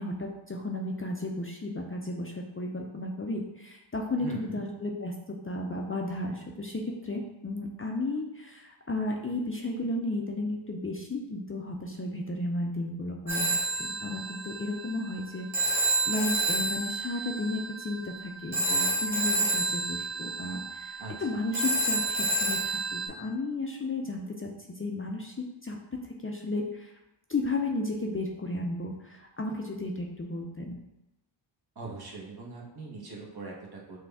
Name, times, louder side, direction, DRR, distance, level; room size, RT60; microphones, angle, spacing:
voice 1, 0.0-25.8 26.2-27.0 27.3-30.8, left 2 dB, 30° left, 1 dB, 0.5 m, -34 dB
voice 2, 4.2-4.6 21.0-21.3 31.7-34.0, right 3 dB, 50° right, -2 dB, 1.1 m, -41 dB
Telephone, 13.3-23.1, right 2 dB, 70° right, 1.3 m, -29 dB
6.0 x 2.3 x 3.4 m, 0.94 s
wide cardioid pair, 70°, 48 cm